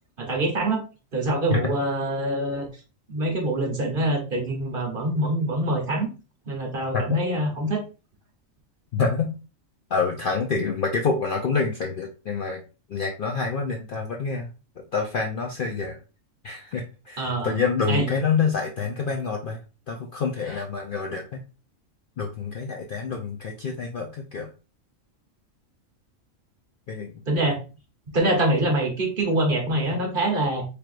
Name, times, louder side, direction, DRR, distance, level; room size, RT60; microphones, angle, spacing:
voice 1, 0.2-0.8 1.1-2.7 3.1-6.1 6.5-7.8 17.2-17.5 17.9-18.1 27.3-27.6 28.1-30.6, right 1 dB, 45° right, 1 dB, 1.1 m, -25 dB
voice 2, 8.9-9.3 9.9-12.6 12.9-14.5 14.9-16.0 16.4-19.6 19.9-21.2 22.2-24.5 26.9-27.1, left 5 dB, 55° left, 1 dB, 0.6 m, -27 dB
4.5 x 3.4 x 2.4 m, 0.32 s
omnidirectional pair, 1.4 m